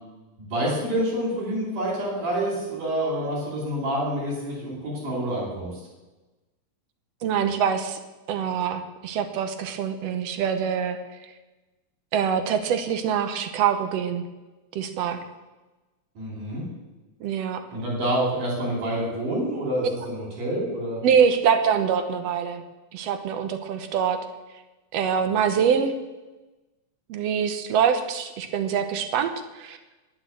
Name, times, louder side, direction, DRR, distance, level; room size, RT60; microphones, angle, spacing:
voice 1, 0.4-5.8 16.2-16.6 17.7-21.0, right 1 dB, 85° right, -7 dB, 5.7 m, -27 dB
voice 2, 7.2-8.0 8.3-11.0 12.1-14.2 14.8-15.2 17.2-17.6 21.0-22.6 22.9-24.2 24.9-25.9 27.1-29.3 29.6-29.8, right 7 dB, 70° right, 8 dB, 1.8 m, -24 dB
11.0 x 8.0 x 7.7 m, 1.1 s
omnidirectional pair, 3.5 m